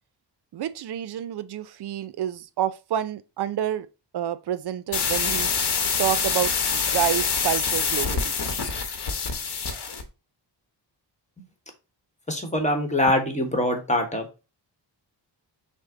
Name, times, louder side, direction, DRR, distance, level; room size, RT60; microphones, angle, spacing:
voice 1, 0.5-3.9 4.1-5.5 6.0-8.3, right 10 dB, 60° right, 0.5 m, -28 dB
sound 1, 4.9-10.1, left 5 dB, 60° left, 1.0 m, -25 dB
voice 2, 12.3-14.3, left 1 dB, 15° left, 1.1 m, -23 dB
6.3 x 2.1 x 3.7 m
wide cardioid pair, 105°, 44 cm